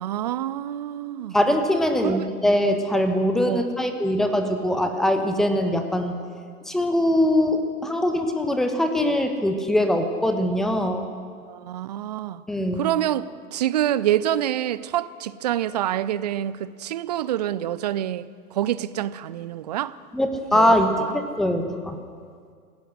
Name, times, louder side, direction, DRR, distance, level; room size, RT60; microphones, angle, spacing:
voice 1, 0.0-1.4 2.0-2.3 3.4-3.6 11.5-12.4 12.7-20.0 20.5-21.1, right 12 dB, 30° right, 17 dB, 0.5 m, -27 dB
voice 2, 1.3-6.2 6.7-11.1 12.5-12.9 20.1-20.9 21.4-22.0, left 1 dB, ahead, 6 dB, 1.1 m, -22 dB
28.0 x 17.0 x 6.4 m, 2.1 s
figure-of-eight pair, 105°, 46 cm